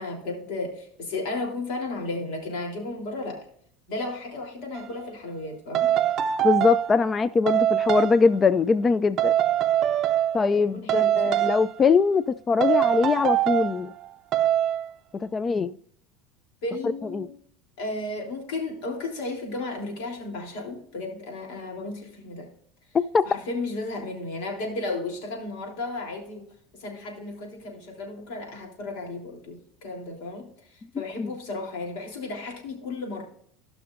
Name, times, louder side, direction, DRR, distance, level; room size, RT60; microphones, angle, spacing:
voice 1, 0.0-3.4 3.9-5.9 10.5-11.4 16.6-17.3 17.8-22.5 23.2-26.5 26.7-33.2, left 2 dB, 75° left, 0 dB, 3.4 m, -34 dB
sound 1, 4.7-4.9 5.7-7.0 7.5-8.2 9.2-10.6 10.9-11.8 12.6-13.8 14.3-14.9, right 11 dB, 45° right, 0.5 m, -23 dB
voice 2, 6.4-9.3 10.3-13.9 15.1-15.8 17.1-17.3 23.1-23.2 30.9-31.3, left 4 dB, 25° left, 15 dB, 0.3 m, -22 dB
17.0 x 5.9 x 2.5 m, 0.64 s
supercardioid pair, 125°, 0 cm